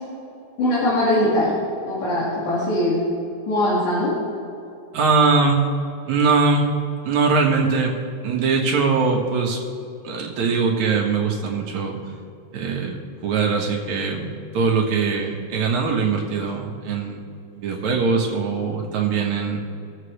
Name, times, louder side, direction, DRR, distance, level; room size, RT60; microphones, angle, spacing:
voice 1, 0.6-1.5 1.9-3.0 3.5-4.1, left 1 dB, 90° left, -7 dB, 3.6 m, -21 dB
voice 2, 4.9-5.7 6.1-6.7 7.0-8.0 8.2-9.6 10.0-12.0 12.5-13.0 13.2-17.2 17.6-19.6, right 4 dB, 75° right, 0 dB, 2.8 m, -21 dB
21.5 x 7.5 x 3.2 m, 2.6 s
omnidirectional pair, 3.4 m